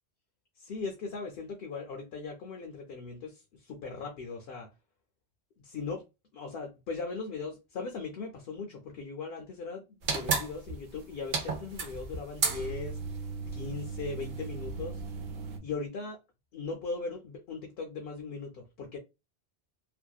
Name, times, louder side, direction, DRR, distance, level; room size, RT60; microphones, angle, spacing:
voice 1, 0.6-4.7 5.6-6.0 6.3-13.0 13.5-15.0 15.6-16.2 16.5-19.0, left 4 dB, 70° left, 0.7 m, -39 dB
sound 1, 10.0-15.6, right 4 dB, 65° right, 0.8 m, -34 dB
2.6 x 2.2 x 2.2 m
omnidirectional pair, 1.1 m